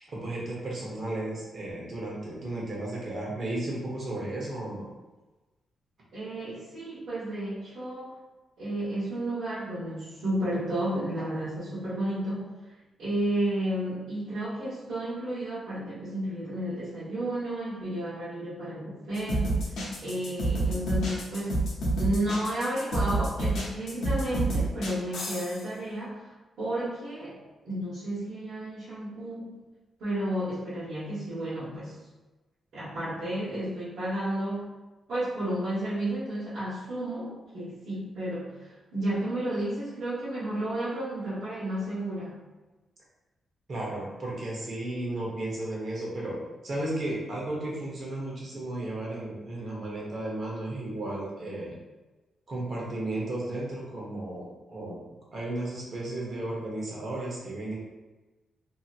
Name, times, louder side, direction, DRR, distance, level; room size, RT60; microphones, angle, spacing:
voice 1, 0.1-4.9 43.7-51.7 52.5-55.0 55.3-57.7, right 1 dB, 45° right, -4 dB, 1.0 m, -34 dB
voice 2, 6.1-8.1 8.6-12.5 13.0-21.6 21.9-26.3 26.6-29.5 30.0-31.9 32.7-34.7 35.1-42.4, right 1 dB, 70° right, -12 dB, 1.2 m, -32 dB
sound 1, 19.1-25.6, right 2 dB, 80° left, 0.8 m, -28 dB
2.8 x 2.8 x 2.5 m, 1.2 s
cardioid pair, 125°, 0 cm